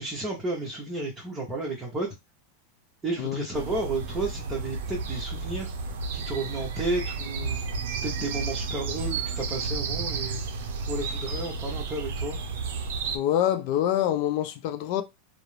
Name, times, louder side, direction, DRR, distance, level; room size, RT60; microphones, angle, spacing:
voice 1, 0.0-2.1 3.0-7.6 8.0-12.4, right 2 dB, 15° right, 0.8 m, -32 dB
sound 1, 3.5-13.2, right 4 dB, 80° right, 0.5 m, -32 dB
voice 2, 13.1-15.0, left 11 dB, 55° left, 0.4 m, -26 dB
2.4 x 2.0 x 3.0 m
supercardioid pair, 145°, 0 cm